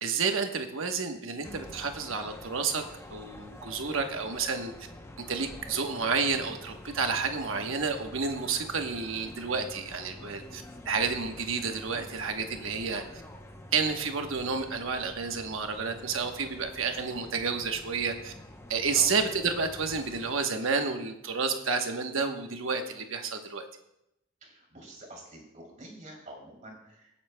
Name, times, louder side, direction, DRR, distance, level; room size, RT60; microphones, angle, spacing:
voice 1, 0.0-2.8 3.1-4.7 5.3-13.0 13.7-18.3 18.7-23.6, right 5 dB, 70° right, 5 dB, 1.1 m, -30 dB
sound 1, 1.4-20.3, left 1 dB, 15° left, 0.7 m, -47 dB
voice 2, 24.4-27.1, right 1 dB, 40° right, 0 dB, 3.0 m, -47 dB
20.0 x 8.6 x 2.2 m, 0.84 s
head